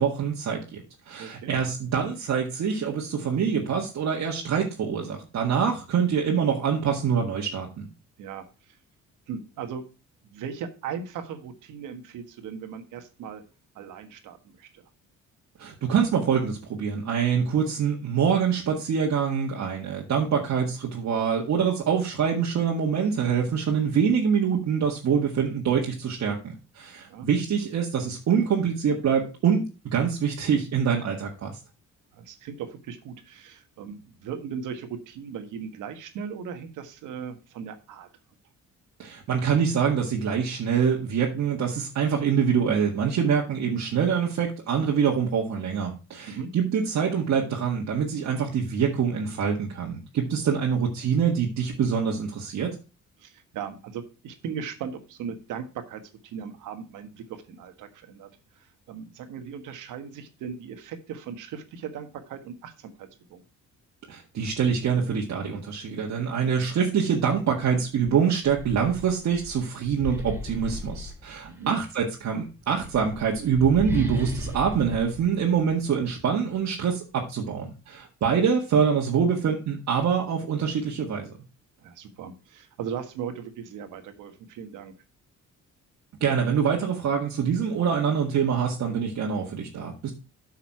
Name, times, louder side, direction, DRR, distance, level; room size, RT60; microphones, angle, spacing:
voice 1, 0.0-7.9 15.6-29.6 29.9-31.6 39.0-52.8 64.1-81.3 86.2-90.1, right 7 dB, 60° right, -1 dB, 1.8 m, -25 dB
voice 2, 1.2-1.5 8.2-8.8 9.3-9.8 10.2-13.4 13.8-14.8 27.0-27.3 32.1-38.1 46.3-46.5 53.2-58.3 58.6-63.4 71.4-71.8 81.8-84.9, right 7 dB, 85° right, 8 dB, 1.6 m, -38 dB
sound 1, 68.0-71.7 72.6-76.2, equal, 10° right, 2.2 m, -36 dB
8.8 x 5.8 x 4.6 m, 0.32 s
cardioid pair, 90°, 30 cm